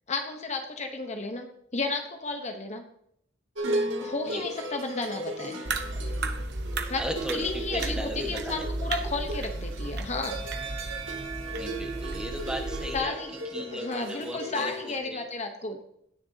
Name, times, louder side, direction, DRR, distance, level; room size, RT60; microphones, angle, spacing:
voice 1, 0.1-1.5 1.7-2.8 4.0-5.6 6.9-7.0 7.3-10.4 12.9-13.3 13.7-15.8, left 3 dB, 35° left, 5 dB, 1.0 m, -33 dB
sound 1, 3.6-15.0, right 1 dB, 85° right, 2.3 m, -36 dB
sound 2, 5.7-13.0, right 2 dB, 55° right, 0.9 m, -34 dB
voice 2, 7.0-8.6 11.6-13.2 13.5-15.3, equal, 5° right, 3 dB, 1.4 m, -36 dB
17.0 x 6.7 x 2.8 m, 0.71 s
head